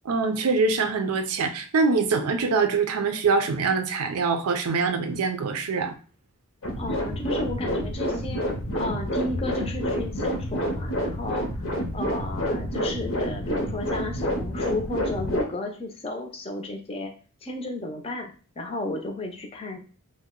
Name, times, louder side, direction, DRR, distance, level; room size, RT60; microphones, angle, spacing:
voice 1, 0.0-6.0, right 4 dB, 80° right, 7 dB, 0.5 m, -24 dB
sound 1, 6.6-15.4, equal, 65° left, 0.7 m, -28 dB
voice 2, 6.8-8.5 8.7-11.5 11.9-17.1 17.4-19.8, left 2 dB, 25° left, 3 dB, 0.5 m, -33 dB
2.7 x 2.1 x 3.6 m, 0.38 s
head